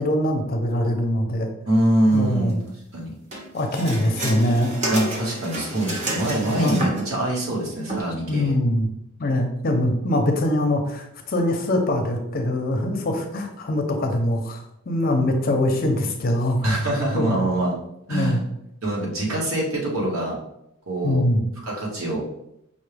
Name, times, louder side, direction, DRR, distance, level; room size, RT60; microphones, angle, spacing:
voice 1, 0.0-1.5 2.1-2.6 3.5-4.7 6.5-6.8 8.3-8.9 9.2-14.6 14.9-16.7 17.1-17.4 18.1-18.4 21.0-21.4, left 1 dB, 40° left, 3 dB, 0.6 m, -23 dB
voice 2, 1.7-2.6 2.9-3.1 4.9-8.5 16.6-17.8 18.1-18.4 18.8-20.4 20.9-21.2 21.6-22.2, right 1 dB, 80° right, -3 dB, 1.2 m, -24 dB
sound 1, 3.3-7.2 7.9-8.0, right 1 dB, 30° right, 0.7 m, -30 dB
5.3 x 2.3 x 3.2 m, 0.80 s
head